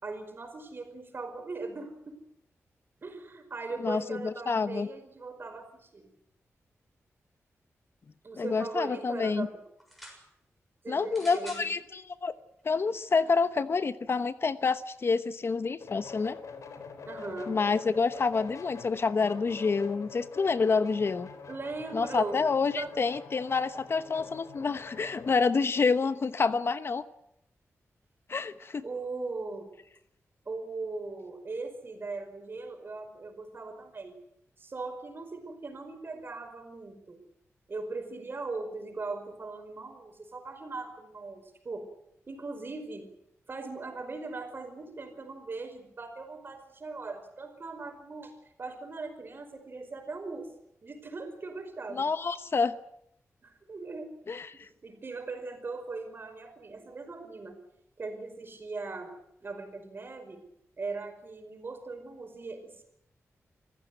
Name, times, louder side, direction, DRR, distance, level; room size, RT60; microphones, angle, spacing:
voice 1, 0.0-2.2 3.0-6.1 8.2-9.6 10.8-11.7 17.1-17.6 21.5-22.4 22.8-23.1 28.8-29.7 30.5-34.1 34.6-37.2 37.7-41.9 42.3-43.1 43.5-48.3 48.6-50.5 50.8-52.1 53.4-54.1 54.5-57.6 58.0-59.1 59.4-60.4 60.8-62.8, right 3 dB, 45° right, 6 dB, 5.2 m, -39 dB
voice 2, 3.8-4.9 8.4-9.5 10.9-12.3 12.6-16.4 17.5-21.3 21.9-27.0 28.3-28.8 51.9-52.8 54.3-54.7, left 4 dB, 50° left, 13 dB, 1.0 m, -28 dB
sound 1, 9.8-10.2 11.1-11.7 12.6-12.7, equal, ahead, 6.8 m, -47 dB
sound 2, 15.8-25.4, left 5 dB, 75° left, 3.7 m, -45 dB
26.0 x 15.0 x 9.3 m, 0.76 s
wide cardioid pair, 115°, 5 cm